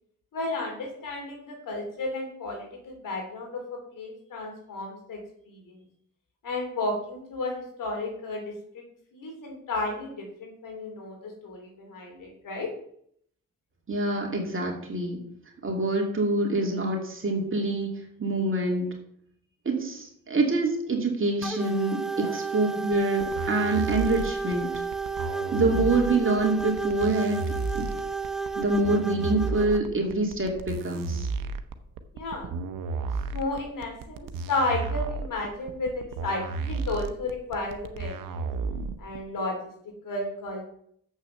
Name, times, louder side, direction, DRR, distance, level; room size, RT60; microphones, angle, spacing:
voice 1, 0.3-5.8 6.4-8.8 9.1-12.7 22.1-22.3 32.1-32.5 33.3-38.5 39.0-40.7, left 2 dB, 75° left, 2 dB, 3.4 m, -33 dB
voice 2, 13.9-15.2 15.6-17.9 18.2-18.9 19.6-24.7 25.5-27.9 28.5-31.3, right 2 dB, 40° right, 0 dB, 2.6 m, -26 dB
sound 1, 21.4-29.8, right 4 dB, ahead, 0.8 m, -32 dB
sound 2, 23.2-39.2, right 4 dB, 90° right, 0.8 m, -33 dB
7.5 x 6.3 x 6.7 m, 0.67 s
cardioid pair, 60°, 33 cm